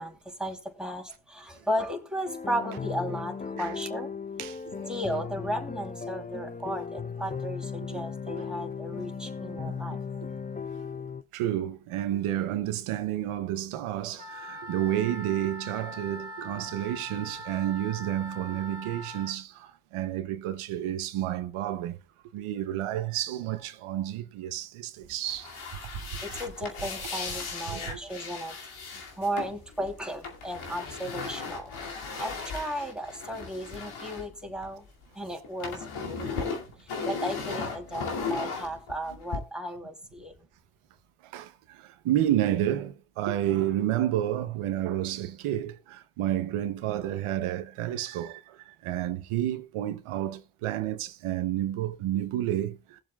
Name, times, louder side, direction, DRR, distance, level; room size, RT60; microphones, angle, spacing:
voice 1, 0.0-4.1 4.8-10.0 26.2-28.6 29.2-31.8 32.2-34.9 35.1-36.5 37.0-40.3, equal, ahead, 2.8 m, -35 dB
sound 1, 2.2-11.2, left 6 dB, 15° left, 0.5 m, -36 dB
voice 2, 4.4-5.0 7.9-8.0 8.4-8.5 9.5-10.0 11.3-22.0 22.3-25.7 25.9-26.3 27.7-28.0 41.2-53.0, right 12 dB, 90° right, 0.8 m, -30 dB
Wind instrument woodwind instrument, 14.1-19.4, equal, 55° left, 2.8 m, -42 dB
sound 2, 25.2-35.0 35.3-39.4, left 4 dB, 80° left, 2.5 m, -36 dB
19.5 x 7.4 x 2.3 m
supercardioid pair, 50°, 49 cm